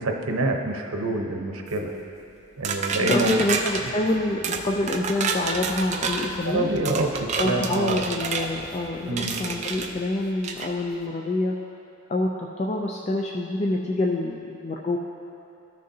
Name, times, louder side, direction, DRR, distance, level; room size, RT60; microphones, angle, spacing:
voice 1, 0.0-1.9 2.6-3.4 6.4-8.0 9.1-9.4, right 2 dB, 85° right, 2 dB, 0.8 m, -26 dB
sound 1, 2.6-3.8 4.4-4.6 4.9-6.3 6.8-8.5 9.2-9.9 10.4-10.7, right 5 dB, 30° right, 0.4 m, -28 dB
voice 2, 3.1-6.7 7.4-11.5 12.1-15.0, left 2 dB, 30° left, 0 dB, 0.3 m, -27 dB
sound 2, 3.2-10.0, left 1 dB, 75° left, 0.8 m, -47 dB
13.5 x 6.4 x 2.7 m, 2.7 s
head